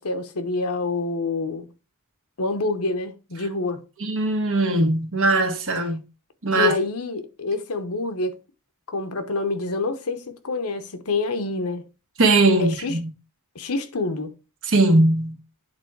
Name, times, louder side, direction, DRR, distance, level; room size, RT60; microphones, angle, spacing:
voice 1, 0.0-1.7 2.4-3.8 6.5-8.3 8.9-11.8 12.6-12.9 13.5-14.3, left 3 dB, 75° left, 1.0 m, -27 dB
voice 2, 4.0-6.0 6.4-6.7 12.2-13.1 14.7-15.4, right 2 dB, 65° right, 1.5 m, -20 dB
8.8 x 3.7 x 4.6 m
head